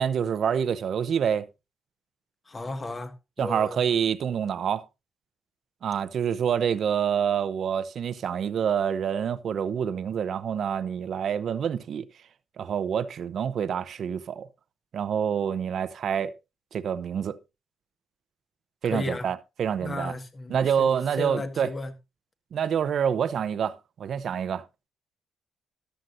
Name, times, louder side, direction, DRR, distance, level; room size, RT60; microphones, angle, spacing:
voice 1, 0.0-1.5 3.4-4.8 5.8-12.0 12.6-14.5 14.9-16.3 16.7-17.4 18.8-20.1 20.5-21.7 22.5-24.6, right 8 dB, 60° right, 0.8 m, -27 dB
voice 2, 2.5-3.8 18.8-19.3 19.8-21.9, left 2 dB, 25° left, 1.7 m, -34 dB
13.5 x 11.5 x 2.6 m
cardioid pair, 90°, 0 cm